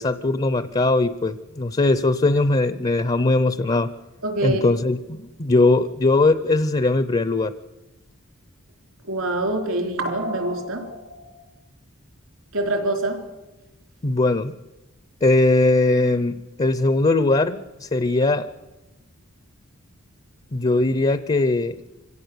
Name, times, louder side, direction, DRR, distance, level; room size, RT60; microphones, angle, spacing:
voice 1, 0.0-3.9 4.4-7.5 14.0-14.5 15.2-18.5 20.5-21.7, left 2 dB, 30° left, 14 dB, 0.6 m, -20 dB
voice 2, 4.2-4.6 9.1-11.2 12.5-13.2, right 1 dB, 75° right, 4 dB, 3.7 m, -25 dB
25.0 x 17.0 x 7.0 m, 1.1 s
head